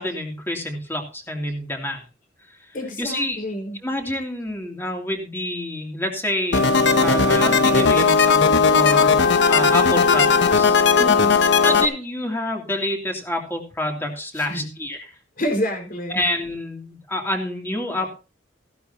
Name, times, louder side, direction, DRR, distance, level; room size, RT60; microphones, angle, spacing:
voice 1, 0.0-2.0 2.5-3.4 3.8-9.2 9.5-10.8 11.6-15.1 16.1-18.1, left 1 dB, 15° left, 1 dB, 2.9 m, -28 dB
voice 2, 2.7-3.8 10.9-11.4 14.4-14.7 15.4-16.2, equal, 50° left, 3 dB, 4.8 m, -28 dB
sound 1, 6.5-11.9, left 5 dB, 70° left, 1.0 m, -17 dB
16.0 x 11.5 x 2.8 m, 0.33 s
head